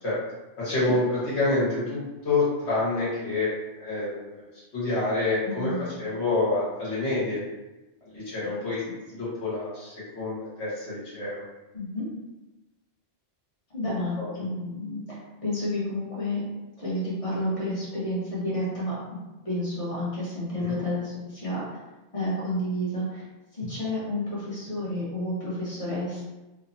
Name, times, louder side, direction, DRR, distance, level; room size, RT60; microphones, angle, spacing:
voice 1, 0.6-1.0 1.3-3.5 3.8-4.4 4.7-5.7 6.0-7.4 8.0-8.8 9.1-11.4 14.2-14.3 20.5-20.7, left 2 dB, 70° left, -9 dB, 1.5 m, -27 dB
voice 2, 5.4-5.9 8.4-8.7 9.1-9.2 11.7-12.1 13.7-16.4 16.8-19.0 19.4-21.8 22.1-23.2 23.5-26.2, left 1 dB, 30° left, -8 dB, 0.9 m, -30 dB
3.1 x 2.0 x 2.5 m, 1.1 s
omnidirectional pair, 1.2 m